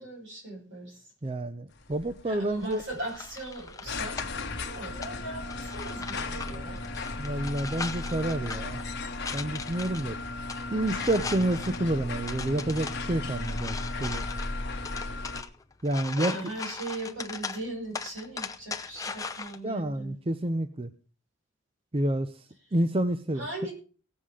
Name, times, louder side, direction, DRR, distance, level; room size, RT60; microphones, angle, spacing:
voice 1, 0.0-1.1 2.3-4.2 4.6-6.9 16.2-20.2 23.3-23.7, right 2 dB, 70° right, -1 dB, 6.9 m, -39 dB
voice 2, 1.2-2.8 7.2-8.8 9.3-10.2 10.7-14.3 15.8-16.4 19.6-20.9 21.9-22.5 22.7-23.4, right 1 dB, 30° right, 10 dB, 0.6 m, -29 dB
sound 1, 1.8-15.4, left 2 dB, 55° left, 1.3 m, -36 dB
sound 2, 2.6-19.6, left 5 dB, 15° left, 0.7 m, -40 dB
17.0 x 7.5 x 4.9 m, 0.38 s
head